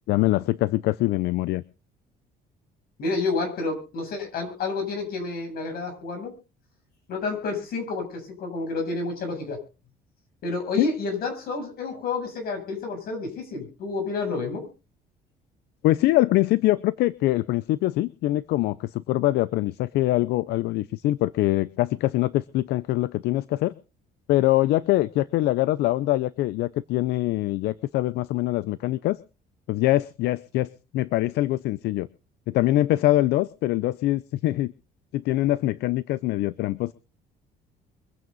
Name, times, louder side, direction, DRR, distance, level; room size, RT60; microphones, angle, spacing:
voice 1, 0.1-1.6 10.8-10.9 15.8-23.7 24.3-29.2 29.7-32.1 32.5-34.7 35.1-36.9, left 16 dB, 80° left, 18 dB, 0.6 m, -23 dB
voice 2, 3.0-6.3 7.1-9.6 10.4-14.7, left 3 dB, 65° left, 3 dB, 7.9 m, -29 dB
24.0 x 9.5 x 4.0 m, 0.34 s
cardioid pair, 110°, 17 cm